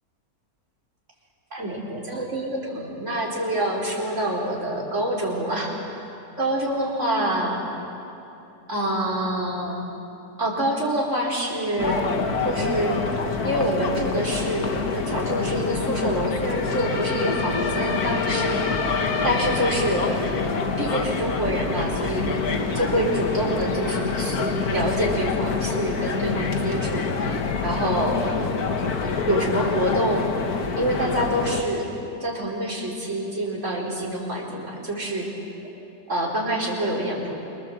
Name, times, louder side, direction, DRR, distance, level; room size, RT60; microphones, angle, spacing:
voice 1, 1.5-5.9 6.4-7.6 8.7-9.9 10.4-12.1 12.4-13.1 13.4-18.9 19.2-20.4 20.8-22.4 22.7-27.4 27.6-28.3 29.3-30.4 30.8-31.9 32.2-35.3 36.1-37.3, right 1 dB, 50° right, -3 dB, 4.9 m, -26 dB
sound 1, 11.8-31.6, left 5 dB, 70° left, 2.0 m, -26 dB
27.5 x 25.0 x 7.8 m, 2.9 s
omnidirectional pair, 1.7 m